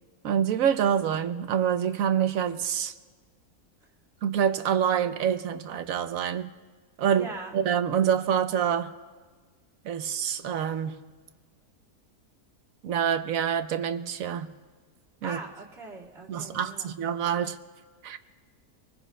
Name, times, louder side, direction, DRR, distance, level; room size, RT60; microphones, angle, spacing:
voice 1, 0.2-2.9 4.2-6.5 7.0-7.3 7.5-8.9 9.8-11.0 12.8-14.5 15.2-15.4 16.3-17.6 18.0-18.2, right 8 dB, 70° right, 10 dB, 1.1 m, -26 dB
voice 2, 7.1-7.6 15.2-16.9, right 3 dB, 45° right, -7 dB, 2.5 m, -41 dB
25.5 x 20.0 x 2.2 m, 1.4 s
omnidirectional pair, 1.6 m